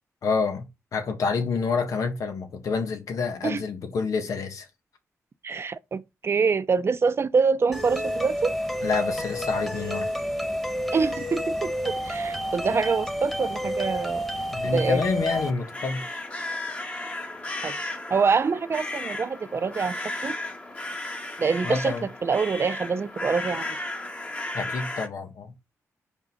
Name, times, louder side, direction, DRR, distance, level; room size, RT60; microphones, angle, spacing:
voice 1, 0.2-4.7 8.8-10.1 14.5-16.2 21.6-22.1 24.5-25.5, left 4 dB, 80° left, 1.5 m, -28 dB
voice 2, 5.4-8.5 10.9-14.2 14.7-15.0 17.6-17.7 18.1-20.0 20.2-20.3 21.4-23.8, right 5 dB, 50° right, 0.7 m, -25 dB
sound 1, 7.7-15.5, equal, 5° left, 1.4 m, -30 dB
sound 2, 15.3-25.1, left 2 dB, 25° left, 1.4 m, -34 dB
5.2 x 4.7 x 5.3 m
cardioid pair, 80°, 6 cm